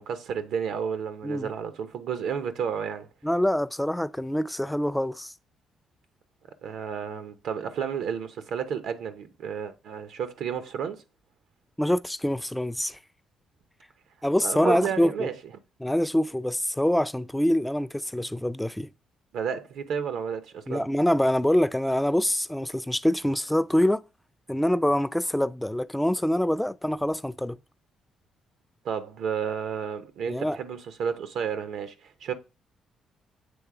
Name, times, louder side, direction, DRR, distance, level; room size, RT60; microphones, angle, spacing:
voice 1, 0.0-3.1 6.6-11.0 14.4-15.4 19.3-20.9 28.8-32.3, right 7 dB, 80° right, 0.7 m, -31 dB
voice 2, 3.2-5.3 11.8-13.0 14.2-15.3 15.8-18.9 20.7-24.0 24.5-27.6 30.3-30.6, left 1 dB, 5° left, 0.3 m, -25 dB
7.8 x 3.3 x 4.7 m
cardioid pair, 90°, 0 cm